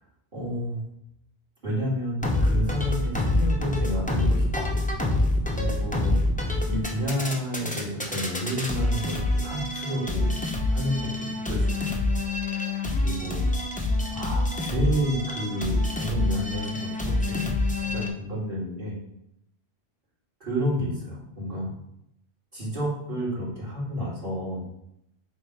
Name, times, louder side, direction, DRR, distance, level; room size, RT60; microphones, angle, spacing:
voice 1, 0.3-0.8 1.6-4.8 5.6-6.2 6.6-10.4 10.7-12.0 12.5-13.4 14.1-19.0 20.4-21.8 22.5-24.6, equal, 50° right, -8 dB, 2.6 m, -30 dB
sound 1, 2.2-18.1, left 2 dB, 10° left, 0.5 m, -26 dB
7.0 x 2.8 x 4.8 m, 0.80 s
omnidirectional pair, 1.1 m